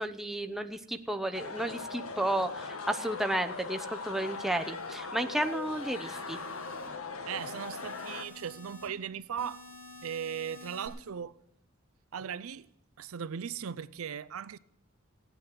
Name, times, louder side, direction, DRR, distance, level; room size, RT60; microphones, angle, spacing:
voice 1, 0.0-6.4, right 1 dB, ahead, 0.7 m, -32 dB
sound 1, 1.3-8.2, left 4 dB, 80° left, 1.3 m, -40 dB
sound 2, 3.8-4.9 5.4-6.9 7.4-8.9 9.4-10.9, left 2 dB, 35° left, 4.2 m, -51 dB
voice 2, 7.3-9.6 10.0-11.3 12.1-12.7 13.0-14.6, right 7 dB, 75° right, 0.5 m, -38 dB
16.5 x 8.9 x 7.6 m
head